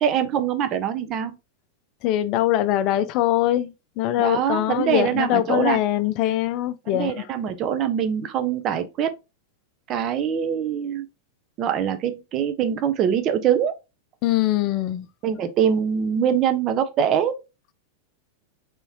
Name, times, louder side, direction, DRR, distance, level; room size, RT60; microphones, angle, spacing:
voice 1, 0.0-1.3 4.2-5.8 6.9-9.1 9.9-11.1 11.6-13.7 15.2-17.3, right 8 dB, 35° right, 0.7 m, -23 dB
voice 2, 2.0-7.1 14.2-15.1, left 13 dB, 40° left, 0.4 m, -22 dB
4.1 x 3.6 x 2.8 m
figure-of-eight pair, 90°, 0 cm